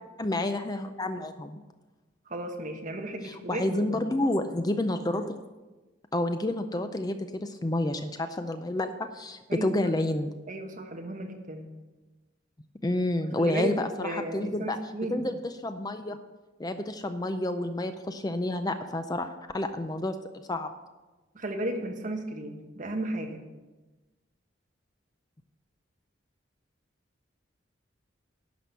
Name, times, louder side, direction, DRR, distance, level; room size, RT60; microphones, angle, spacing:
voice 1, 0.2-1.6 3.2-5.4 6.1-10.3 12.8-14.8 15.1-15.4 15.6-16.2 16.6-20.2 20.5-20.7, left 1 dB, 20° left, 8 dB, 0.5 m, -29 dB
voice 2, 2.3-4.0 9.5-9.9 10.5-11.8 13.4-15.3 21.3-23.4, right 1 dB, 40° right, 3 dB, 1.3 m, -34 dB
11.0 x 6.0 x 8.2 m, 1.2 s
head